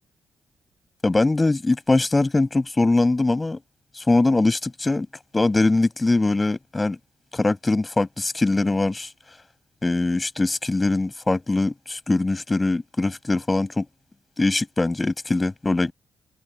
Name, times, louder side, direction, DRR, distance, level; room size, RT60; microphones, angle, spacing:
voice 1, 1.0-3.6 4.0-5.1 5.3-7.0 7.3-9.1 9.8-13.9 14.4-15.9, left 2 dB, 25° left, 7.3 m, -22 dB
cardioid pair, 65°, 0 cm